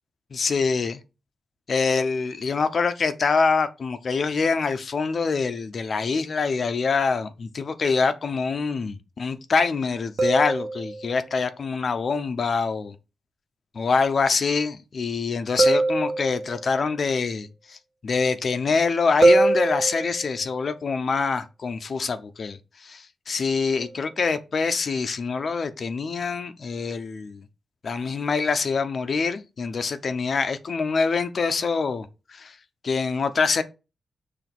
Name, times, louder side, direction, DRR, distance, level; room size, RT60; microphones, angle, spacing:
voice 1, 0.3-1.0 1.7-12.9 13.7-17.8 18.0-27.4 27.8-32.5 32.8-33.6, left 4 dB, 50° left, 0.8 m, -25 dB
sound 1, 10.2-11.3 15.6-16.8 19.2-20.5 23.8-24.0, right 2 dB, 50° right, 1.3 m, -22 dB
7.1 x 3.5 x 6.0 m
wide cardioid pair, 150°, 0 cm